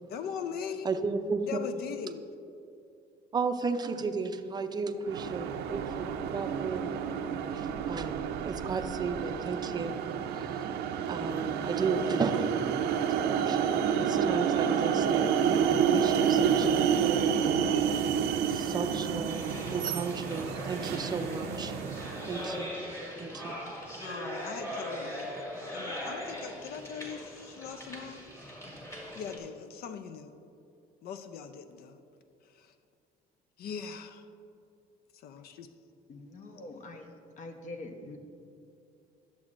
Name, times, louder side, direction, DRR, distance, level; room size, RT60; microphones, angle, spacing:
voice 1, 0.1-0.9 1.4-2.2 24.0-25.4 25.7-28.2 29.1-30.3 31.0-32.0 32.4-32.7 33.6-34.3 35.1-35.7, left 7 dB, 65° left, 9 dB, 0.5 m, -40 dB
voice 2, 0.8-1.5 3.3-7.0 7.5-9.9 10.3-10.7 11.1-12.6 13.1-17.0 17.4-17.5 18.5-21.8 22.3-22.7 23.2-23.6, right 4 dB, 25° right, 7 dB, 0.5 m, -34 dB
sound 1, 5.1-22.5, right 7 dB, 75° right, 0.5 m, -29 dB
sound 2, 19.3-29.4, equal, 20° left, 1.8 m, -40 dB
voice 3, 36.1-37.1 37.4-38.2, left 2 dB, 45° left, 5 dB, 0.9 m, -44 dB
11.5 x 7.2 x 2.5 m, 2.6 s
cardioid pair, 110°, 17 cm